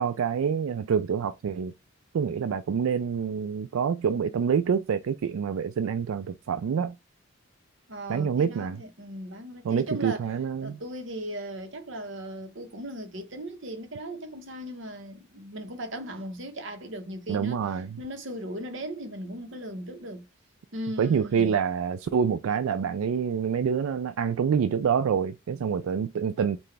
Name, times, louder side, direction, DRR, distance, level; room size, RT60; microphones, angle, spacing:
voice 1, 0.0-1.7 2.1-6.9 8.1-8.8 9.6-10.8 17.3-17.9 21.0-26.6, right 7 dB, 75° right, 0.3 m, -26 dB
voice 2, 7.9-10.2 10.6-20.3 20.7-21.5, equal, 60° right, 1.0 m, -38 dB
5.7 x 2.5 x 3.3 m
head